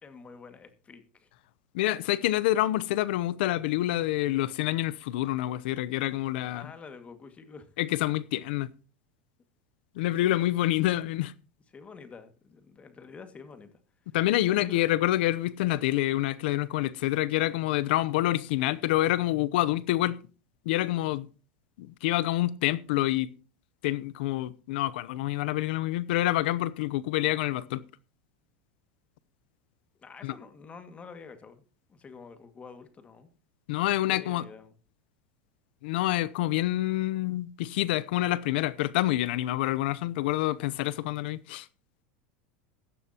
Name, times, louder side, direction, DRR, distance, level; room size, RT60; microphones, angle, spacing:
voice 1, 0.0-1.3 6.5-7.7 10.2-10.4 11.7-13.7 14.5-14.8 30.0-31.6 31.9-33.3 33.7-34.7, left 5 dB, 25° left, 2.0 m, -48 dB
voice 2, 1.7-6.7 7.8-8.7 10.0-11.3 14.1-20.2 20.7-21.3 21.8-23.3 23.8-27.8 30.2-30.3 33.7-34.4 35.8-41.7, left 15 dB, 75° left, 0.7 m, -27 dB
16.0 x 12.0 x 2.9 m
supercardioid pair, 120°, 5 cm